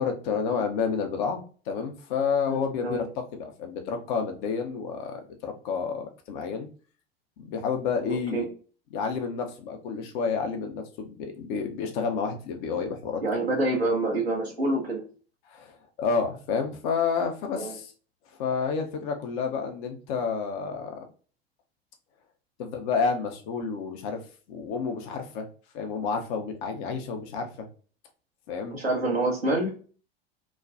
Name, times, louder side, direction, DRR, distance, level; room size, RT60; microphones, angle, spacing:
voice 1, 0.0-6.7 7.4-8.5 8.9-13.2 15.5-17.9 18.4-21.0 22.6-24.2 24.5-25.5 25.7-27.7 28.5-28.8, left 5 dB, 50° left, 4 dB, 0.7 m, -30 dB
voice 2, 2.5-3.0 8.3-8.4 13.2-15.0 17.5-17.7 28.7-29.7, right 2 dB, 85° right, -2 dB, 1.1 m, -27 dB
3.1 x 2.2 x 2.5 m, 0.39 s
figure-of-eight pair, 75°, 30 cm